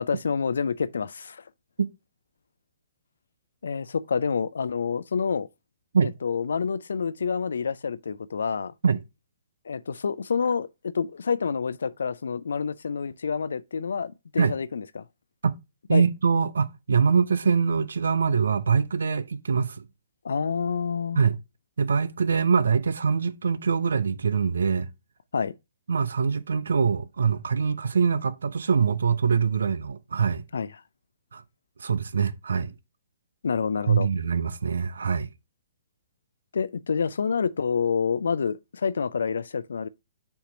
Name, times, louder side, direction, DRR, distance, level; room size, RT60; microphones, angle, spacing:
voice 1, 0.0-1.4 3.6-5.5 6.0-8.7 9.7-15.0 15.9-16.0 20.2-21.2 25.3-25.5 30.5-30.7 33.4-34.1 36.5-39.9, left 6 dB, 80° left, 0.4 m, -28 dB
voice 2, 15.9-19.8 21.2-21.4 21.8-24.9 25.9-30.4 31.3-31.4 31.8-32.7 33.9-35.3, right 6 dB, 80° right, 0.5 m, -23 dB
7.0 x 2.8 x 5.0 m
hypercardioid pair, 130°, 0 cm